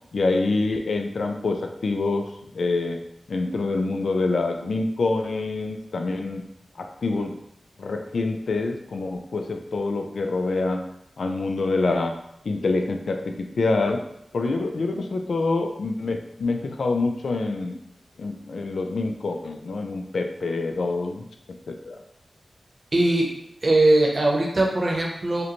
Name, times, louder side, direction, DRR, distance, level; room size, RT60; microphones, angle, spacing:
voice 1, 0.1-3.0 3.3-6.4 6.8-7.4 7.8-10.8 11.2-12.1 12.4-14.0 14.3-17.8 18.2-22.0, left 3 dB, 80° left, 5 dB, 0.4 m, -26 dB
voice 2, 22.9-23.3 23.6-25.4, right 2 dB, 50° right, 0 dB, 0.8 m, -20 dB
4.9 x 2.2 x 3.0 m, 0.77 s
wide cardioid pair, 75°, 0 cm